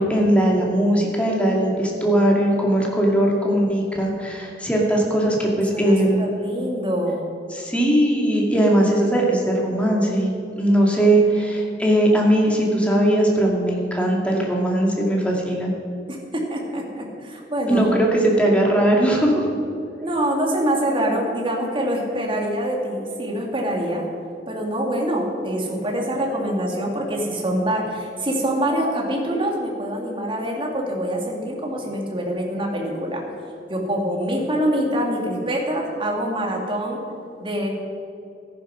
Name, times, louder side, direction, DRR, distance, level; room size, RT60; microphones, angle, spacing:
voice 1, 0.0-6.2 7.5-10.3 10.6-15.7 17.7-19.4, right 1 dB, 5° left, -2 dB, 2.3 m, -19 dB
voice 2, 5.7-7.3 16.1-17.9 20.0-24.1 24.5-33.2 33.7-37.0 37.4-37.7, right 1 dB, 30° right, 0 dB, 2.3 m, -25 dB
13.5 x 10.5 x 6.3 m, 2.6 s
head